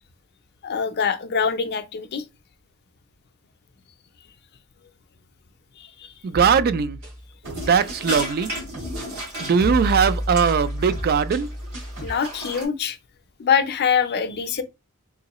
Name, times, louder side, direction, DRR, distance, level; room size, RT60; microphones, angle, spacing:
voice 1, 0.6-2.2 5.8-5.9 12.0-13.0 13.4-14.6, left 7 dB, 50° left, 0.5 m, -24 dB
voice 2, 6.2-7.0 7.6-8.5 9.4-11.5, right 6 dB, 45° right, 0.3 m, -20 dB
sound 1, 6.3-8.0 8.7-9.3 9.6-12.2, equal, 65° right, 2.0 m, -31 dB
sound 2, 7.4-12.6, right 1 dB, 90° right, 2.4 m, -35 dB
3.7 x 3.0 x 3.0 m
head